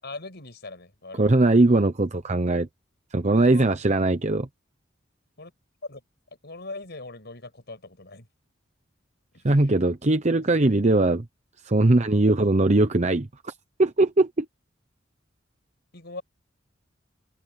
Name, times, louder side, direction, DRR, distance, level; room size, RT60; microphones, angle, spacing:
voice 1, 0.0-1.4 3.3-3.8 5.4-5.5 5.8-6.0 6.4-8.3 9.3-9.7 10.3-10.8 12.8-13.0 15.9-16.2, left 2 dB, 60° left, 6.3 m, -41 dB
voice 2, 1.2-2.7 3.1-4.5 9.4-11.3 11.6-13.5 13.8-14.5, right 2 dB, 35° right, 0.9 m, -20 dB
head